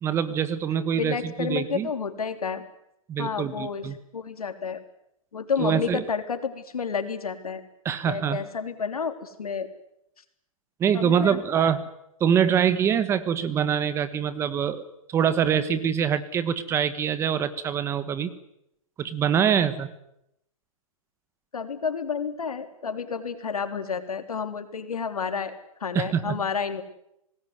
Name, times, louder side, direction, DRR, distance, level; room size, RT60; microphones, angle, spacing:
voice 1, 0.0-1.9 3.1-4.0 5.6-6.0 7.8-8.4 10.8-11.9 12.2-18.3 19.0-19.9 25.9-26.4, right 8 dB, 15° right, 13 dB, 1.3 m, -24 dB
voice 2, 0.9-2.6 3.2-3.9 4.1-4.8 5.3-7.6 8.1-9.7 10.9-11.7 21.5-25.6 25.8-26.8, left 6 dB, 90° left, 8 dB, 3.7 m, -30 dB
25.0 x 19.5 x 9.7 m, 0.80 s
hypercardioid pair, 150°, 18 cm